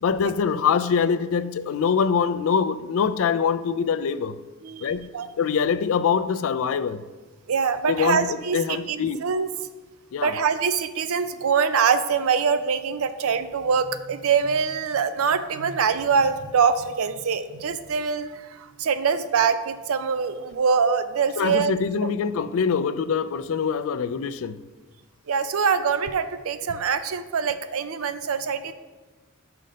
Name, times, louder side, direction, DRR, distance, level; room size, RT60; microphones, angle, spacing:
voice 1, 0.0-4.4 4.8-7.0 7.9-9.2 10.1-10.3 21.4-24.6, left 6 dB, 70° left, 14 dB, 0.3 m, -24 dB
voice 2, 4.6-5.3 7.5-9.5 10.2-21.8 22.0-22.1 25.3-28.7, right 6 dB, 75° right, 12 dB, 0.5 m, -24 dB
5.7 x 5.2 x 5.2 m, 1.3 s
head